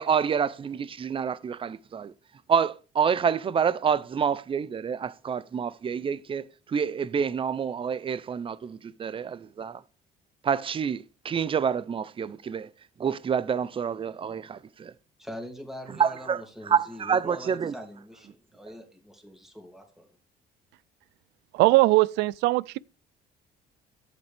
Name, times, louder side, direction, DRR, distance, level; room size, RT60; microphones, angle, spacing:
voice 1, 0.0-2.1 2.5-9.8 10.4-12.7 13.0-14.9 16.0-17.7, right 7 dB, 30° right, 0.6 m, -28 dB
voice 2, 15.2-20.1, equal, ahead, 2.6 m, -43 dB
voice 3, 21.5-22.8, right 20 dB, 90° right, 0.4 m, -20 dB
11.5 x 8.1 x 3.5 m
cardioid pair, 110°, 17 cm